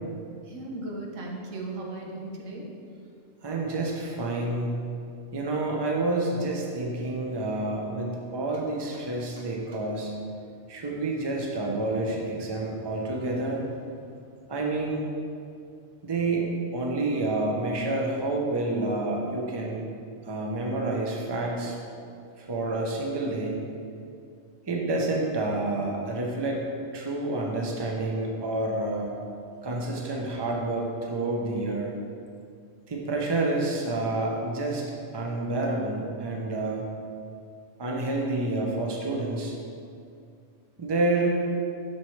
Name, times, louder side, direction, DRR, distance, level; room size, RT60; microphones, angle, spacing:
voice 1, 0.4-2.7, right 2 dB, 90° right, 0 dB, 1.3 m, -36 dB
voice 2, 3.4-4.8 5.3-10.1 10.7-13.6 14.5-15.1 16.0-19.8 20.3-21.8 22.5-23.5 24.7-26.6 26.9-29.1 29.6-31.9 32.9-34.8 35.1-36.8 37.8-39.5 40.8-41.3, right 2 dB, 25° right, -1 dB, 0.7 m, -28 dB
7.3 x 6.0 x 3.2 m, 2.4 s
omnidirectional pair, 1.3 m